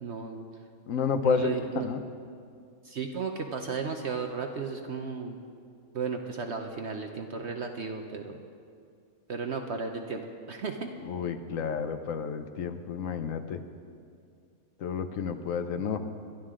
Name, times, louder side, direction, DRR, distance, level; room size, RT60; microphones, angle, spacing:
voice 1, 0.0-0.5 1.2-1.9 2.8-5.4 5.9-8.4 9.3-10.9, right 5 dB, 55° right, 4 dB, 1.0 m, -34 dB
voice 2, 0.9-1.5 1.8-2.0 11.1-13.6 14.8-16.0, left 6 dB, 65° left, 9 dB, 1.1 m, -30 dB
22.0 x 13.0 x 3.7 m, 2.3 s
omnidirectional pair, 1.5 m